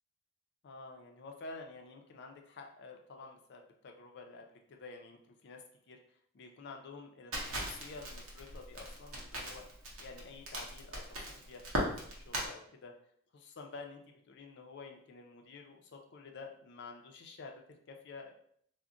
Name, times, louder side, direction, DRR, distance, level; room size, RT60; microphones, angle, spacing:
voice 1, 0.6-6.0 6.3-9.7 10.0-13.0 13.3-18.3, left 3 dB, 50° left, 3 dB, 0.4 m, -50 dB
Crackle, 7.3-12.5, equal, 70° right, 0.8 m, -38 dB
2.4 x 2.1 x 3.7 m, 0.65 s
head